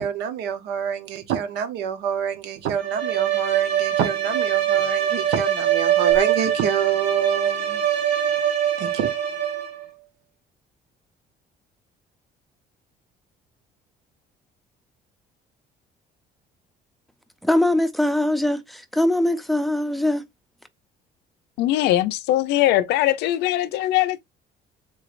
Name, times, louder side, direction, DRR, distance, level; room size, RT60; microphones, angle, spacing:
voice 1, 0.0-7.8 8.8-9.1, right 8 dB, 90° right, 0.8 m, -27 dB
Bowed string instrument, 2.7-9.8, right 10 dB, 70° right, 2.3 m, -23 dB
voice 2, 17.4-20.2, left 1 dB, ahead, 0.5 m, -22 dB
voice 3, 21.6-24.2, left 14 dB, 85° left, 0.5 m, -21 dB
3.7 x 3.1 x 2.5 m
cardioid pair, 110°, 17 cm